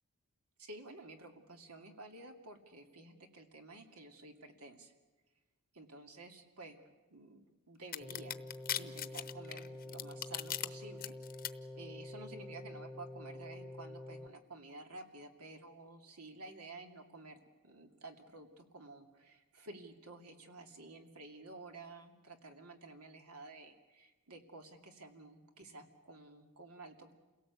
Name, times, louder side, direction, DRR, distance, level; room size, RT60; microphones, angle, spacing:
voice 1, 0.6-4.9 5.7-6.8 7.1-8.4 8.7-17.4 17.6-27.1, right 2 dB, 85° right, 4 dB, 2.5 m, -52 dB
sound 1, 7.9-10.7 11.0-11.5, left 11 dB, 40° left, 0.9 m, -38 dB
sound 2, 8.0-14.3, left 1 dB, 5° left, 1.0 m, -48 dB
28.5 x 17.5 x 8.3 m, 1.2 s
head